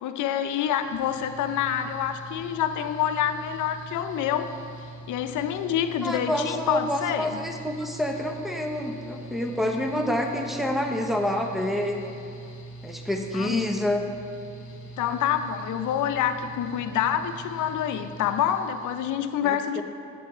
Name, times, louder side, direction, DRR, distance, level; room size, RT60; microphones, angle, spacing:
voice 1, 0.0-4.5 5.1-7.4 13.3-13.7 15.0-19.8, left 9 dB, 80° left, 9 dB, 0.6 m, -27 dB
Mechanical fan, 0.7-19.1, right 2 dB, 40° left, 1.8 m, -43 dB
voice 2, 6.0-12.0 12.8-14.1 19.4-19.8, left 1 dB, ahead, 3 dB, 0.8 m, -28 dB
7.6 x 7.5 x 4.3 m, 2.7 s
cardioid pair, 90°, 30 cm